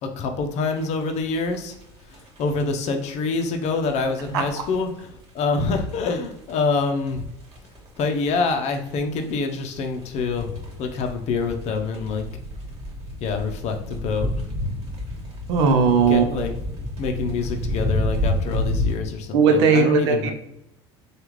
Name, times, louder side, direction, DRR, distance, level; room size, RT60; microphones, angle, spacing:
voice 1, 0.0-1.7 2.1-7.3 8.0-12.3 13.2-14.5 16.1-16.5 17.0-20.3, left 4 dB, 50° left, 5 dB, 0.6 m, -26 dB
sound 1, 0.7-19.0, left 1 dB, 45° right, 1.4 m, -30 dB
voice 2, 15.5-16.4 19.3-20.3, right 5 dB, 75° right, 5 dB, 0.6 m, -18 dB
3.4 x 2.4 x 3.0 m, 0.81 s
hypercardioid pair, 70°, 14 cm